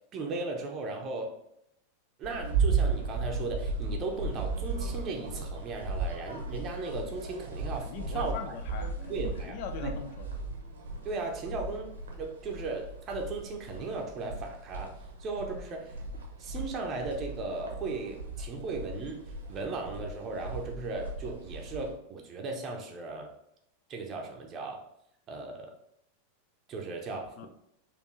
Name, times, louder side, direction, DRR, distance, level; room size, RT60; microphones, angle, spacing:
voice 1, 0.1-1.4 2.2-8.4 9.1-9.9 11.0-11.9 12.2-14.9 15.2-15.9 16.4-23.3 23.9-24.8 25.3-25.7 26.7-27.5, right 3 dB, 30° right, 2 dB, 0.7 m, -36 dB
sound 1, 2.2-21.9, right 4 dB, 70° right, 0.8 m, -36 dB
voice 2, 7.8-10.3 27.4-27.5, left 7 dB, 45° left, 8 dB, 0.5 m, -41 dB
4.3 x 2.7 x 3.2 m, 0.76 s
figure-of-eight pair, 90°, 0 cm